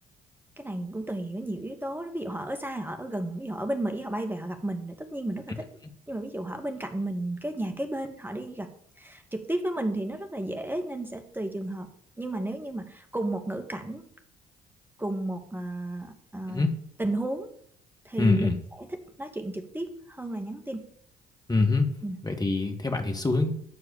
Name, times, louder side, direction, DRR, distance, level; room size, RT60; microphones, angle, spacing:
voice 1, 0.6-5.7 6.1-8.7 9.0-11.9 12.2-14.0 15.0-16.7 17.0-17.5 18.0-18.5 18.8-18.9 19.2-20.8 22.0-22.2, right 1 dB, 10° right, 5 dB, 2.2 m, -33 dB
voice 2, 18.2-18.6 21.5-21.9 22.2-23.5, left 3 dB, 20° left, 4 dB, 2.2 m, -24 dB
13.5 x 4.7 x 8.9 m, 0.65 s
hypercardioid pair, 50°, 20 cm